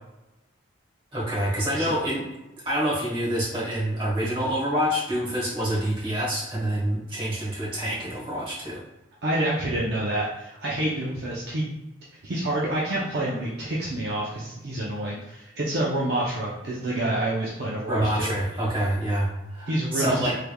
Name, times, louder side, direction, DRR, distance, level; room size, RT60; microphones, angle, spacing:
voice 1, 1.1-2.2 2.6-8.8 17.9-20.4, equal, 25° right, -6 dB, 1.2 m, -27 dB
voice 2, 9.2-11.6 12.2-18.3 19.7-20.2, right 1 dB, 55° right, -6 dB, 0.6 m, -28 dB
3.2 x 3.2 x 2.3 m, 0.96 s
head